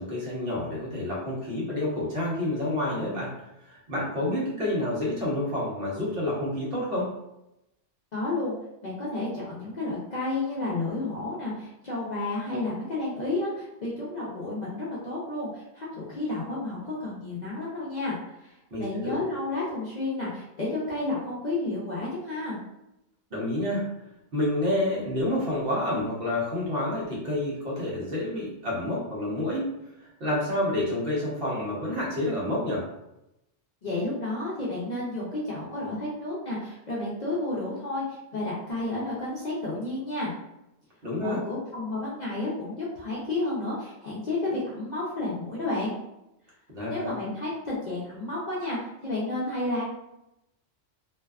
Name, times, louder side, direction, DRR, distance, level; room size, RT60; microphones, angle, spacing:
voice 1, 0.0-3.3 3.6-7.1 18.7-19.2 23.3-23.9 24.3-29.7 30.0-32.9 41.0-41.4 46.7-47.1, left 1 dB, 55° right, -5 dB, 1.0 m, -29 dB
voice 2, 8.1-8.5 8.8-18.2 18.4-22.6 33.8-40.3 41.2-45.9 46.9-49.8, left 2 dB, 50° left, -7 dB, 0.6 m, -31 dB
2.6 x 2.2 x 2.3 m, 0.87 s
omnidirectional pair, 1.2 m